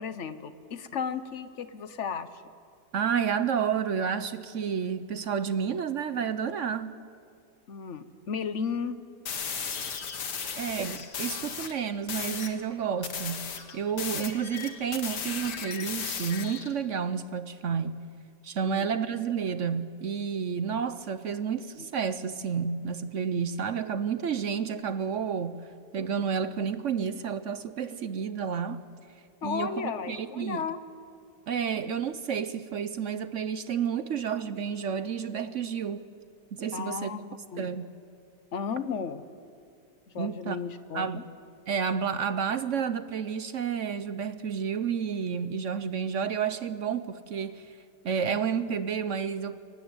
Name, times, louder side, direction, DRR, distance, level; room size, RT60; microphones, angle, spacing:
voice 1, 0.0-2.3 7.7-9.0 18.6-18.9 21.8-21.9 29.4-30.8 36.7-37.7 38.5-39.2 40.1-41.2, left 6 dB, 50° left, 1.1 m, -34 dB
voice 2, 2.9-7.0 10.6-18.0 18.4-25.7 25.9-28.8 29.4-30.6 31.5-36.1 36.5-37.1 37.6-37.9 40.2-40.6 40.9-41.2 41.7-47.8 48.0-49.6, right 7 dB, 60° right, 0.8 m, -30 dB
sound 1, 9.3-11.7 12.1-12.6 13.0-16.7, left 6 dB, 70° left, 2.0 m, -35 dB
23.0 x 19.0 x 8.9 m
omnidirectional pair, 1.9 m